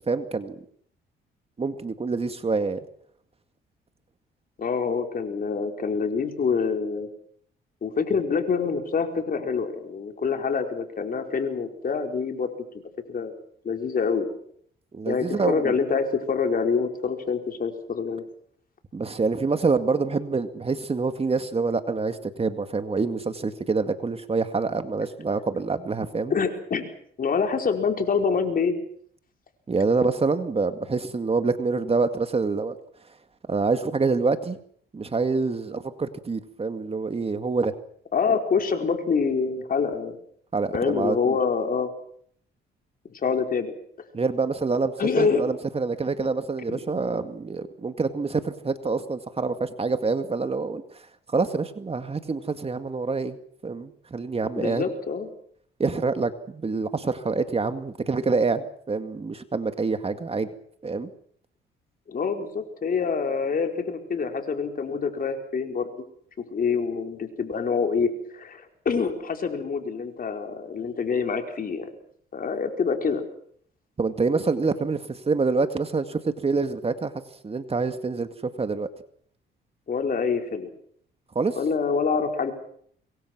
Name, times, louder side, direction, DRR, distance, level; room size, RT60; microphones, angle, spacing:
voice 1, 0.1-0.6 1.6-2.8 14.9-15.7 18.9-26.3 29.7-32.8 33.5-34.6 34.9-37.7 40.5-41.4 44.1-50.8 51.3-53.4 53.6-54.8 55.8-60.5 60.8-61.1 74.0-77.1 77.4-78.3 78.6-78.9 81.4-81.6, right 4 dB, 30° right, 9 dB, 2.1 m, -26 dB
voice 2, 4.6-7.1 7.8-12.5 13.1-13.3 13.6-14.4 15.1-18.2 26.3-26.9 27.2-28.7 38.1-40.2 40.7-41.9 43.2-43.7 45.0-45.4 46.7-46.8 54.6-55.3 62.1-65.9 66.5-71.9 72.3-73.2 79.9-80.7 81.6-82.5, left 5 dB, 45° left, 5 dB, 4.8 m, -26 dB
26.0 x 22.5 x 6.2 m, 0.62 s
cardioid pair, 90°, 20 cm